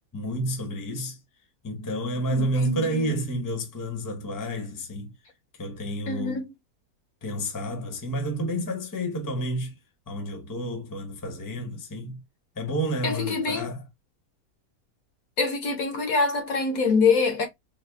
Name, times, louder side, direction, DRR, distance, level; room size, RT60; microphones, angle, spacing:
voice 1, 0.1-1.2 1.6-5.1 5.6-6.4 7.2-9.7 10.1-12.2 12.6-13.8, right 1 dB, 15° left, 0.7 m, -30 dB
voice 2, 2.3-3.1 6.1-6.5 13.0-13.7 15.4-17.5, left 4 dB, 60° left, 1.3 m, -25 dB
4.2 x 2.0 x 3.4 m
omnidirectional pair, 1.8 m